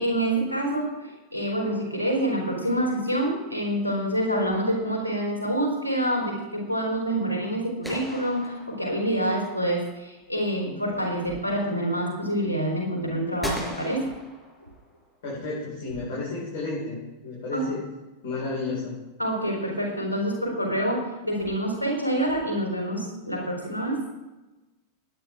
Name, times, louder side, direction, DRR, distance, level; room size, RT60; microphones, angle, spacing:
voice 1, 0.0-14.1 17.5-17.7 19.2-24.0, right 1 dB, 85° right, -1 dB, 4.2 m, -27 dB
sound 1, 7.8-9.3 13.4-15.0, equal, 5° right, 5.4 m, -36 dB
voice 2, 15.2-17.0 17.2-17.8 18.2-19.0, left 3 dB, 55° left, -6 dB, 5.3 m, -32 dB
19.5 x 9.8 x 3.8 m, 1.1 s
figure-of-eight pair, 90°, 0 cm